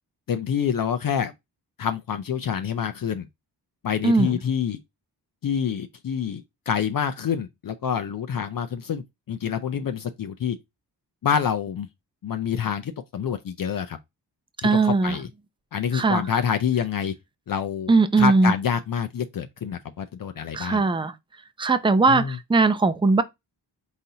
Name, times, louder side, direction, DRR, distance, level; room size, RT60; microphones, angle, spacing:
voice 1, 0.3-1.3 1.8-3.3 3.8-4.8 5.4-10.6 11.2-11.9 12.2-14.0 14.6-15.3 15.7-17.1 17.5-20.8 22.1-22.4, left 7 dB, 50° left, 0.5 m, -27 dB
voice 2, 14.6-15.2 15.9-16.2 17.9-18.5 20.5-21.1 21.6-23.2, right 3 dB, 10° right, 0.5 m, -19 dB
4.0 x 4.0 x 2.8 m
cardioid pair, 65°, 43 cm